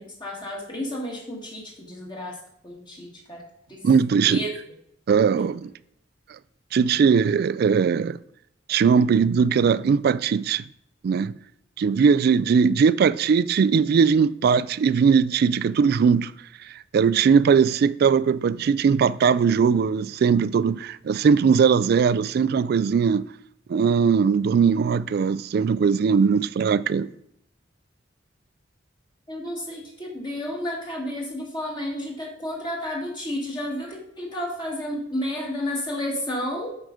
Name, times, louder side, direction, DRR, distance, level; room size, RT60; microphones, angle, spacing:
voice 1, 0.0-2.4 2.6-3.4 3.7-3.8 4.2-4.5 5.4-5.5 29.3-36.7, left 1 dB, 25° left, 1.4 m, -31 dB
voice 2, 3.8-4.4 5.1-5.7 6.7-8.2 8.7-10.6 11.0-11.4 11.8-16.3 16.6-23.3 23.7-27.1, right 6 dB, 55° right, 0.3 m, -20 dB
7.8 x 4.9 x 4.9 m
head